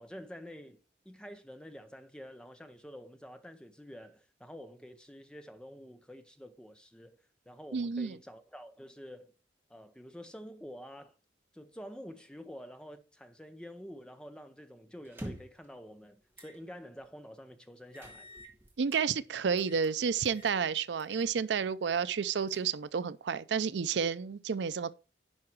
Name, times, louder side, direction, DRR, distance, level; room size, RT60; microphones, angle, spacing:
voice 1, 0.0-7.2 7.5-9.3 9.7-11.1 11.5-18.3, equal, 5° left, 0.8 m, -48 dB
voice 2, 7.7-8.2 18.8-24.9, right 6 dB, 80° right, 0.5 m, -31 dB
sound 1, 15.0-15.7 16.3-16.6 17.0-17.1 17.9-19.0 19.6-19.9 20.2-20.6 21.0-21.3 21.6-21.7 22.2-23.0, equal, 10° right, 1.6 m, -47 dB
11.0 x 4.8 x 4.5 m
head